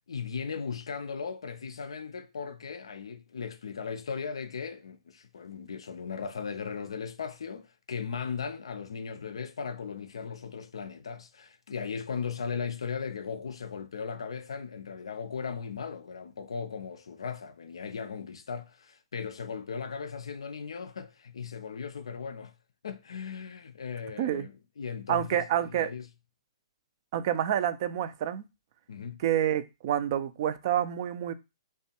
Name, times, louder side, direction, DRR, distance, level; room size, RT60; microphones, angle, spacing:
voice 1, 0.1-22.5 22.8-26.1 28.9-29.2, left 6 dB, 70° left, 0.4 m, -37 dB
voice 2, 25.1-25.9 27.1-28.4 29.2-31.3, right 10 dB, 45° right, 0.3 m, -28 dB
2.5 x 2.2 x 2.8 m
figure-of-eight pair, 120°, 3 cm